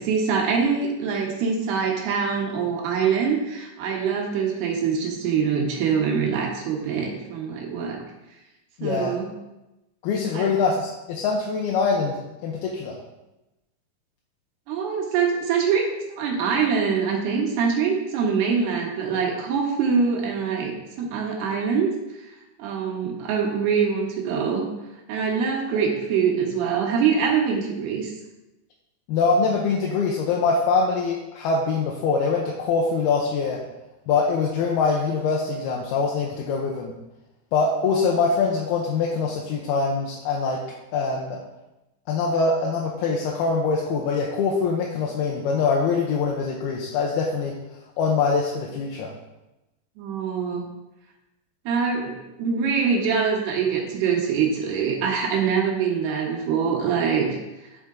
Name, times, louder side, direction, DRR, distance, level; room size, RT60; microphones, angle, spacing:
voice 1, 0.0-8.0 8.8-9.3 10.3-10.5 14.7-15.9 16.2-21.9 22.6-24.6 25.1-28.1 50.0-50.6 51.7-57.4, right 6 dB, 80° right, -1 dB, 3.4 m, -24 dB
voice 2, 8.8-9.2 10.0-13.0 29.1-33.6 34.1-36.9 37.5-40.6 40.9-41.4 42.1-47.5 48.0-49.1, left 4 dB, 80° left, -1 dB, 2.8 m, -23 dB
11.0 x 5.7 x 3.8 m, 0.97 s
omnidirectional pair, 4.6 m